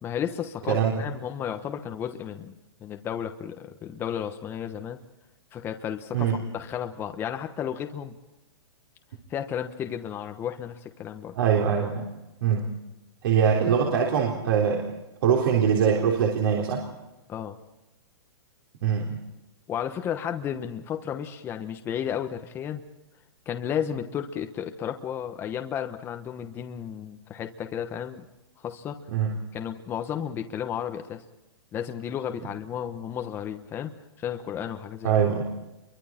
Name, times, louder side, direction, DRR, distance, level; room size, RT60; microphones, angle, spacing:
voice 1, 0.0-2.5 2.8-5.0 5.5-8.1 9.3-11.3 17.3-17.6 19.7-22.8 23.5-28.2 28.6-29.0 29.5-31.2 31.7-35.1, left 9 dB, 15° left, 6 dB, 1.1 m, -33 dB
voice 2, 11.3-12.1 12.4-12.7 13.2-14.8 15.2-16.8 18.8-19.2 29.1-29.3 35.0-35.4, right 7 dB, 60° right, 0 dB, 3.8 m, -23 dB
28.5 x 23.5 x 4.4 m, 0.98 s
hypercardioid pair, 160°, 14 cm